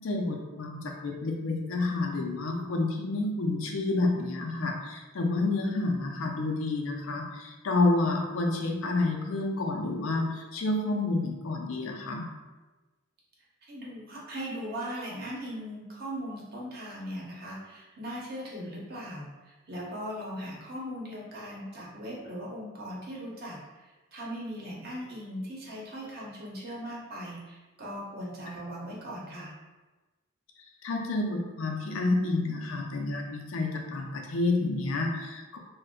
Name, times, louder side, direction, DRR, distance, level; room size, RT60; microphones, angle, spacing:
voice 1, 0.0-12.3 30.8-35.6, left 2 dB, 75° left, 1 dB, 0.5 m, -29 dB
voice 2, 13.7-23.6 24.1-29.5, equal, 50° right, -4 dB, 0.8 m, -39 dB
2.5 x 2.1 x 3.6 m, 1.2 s
head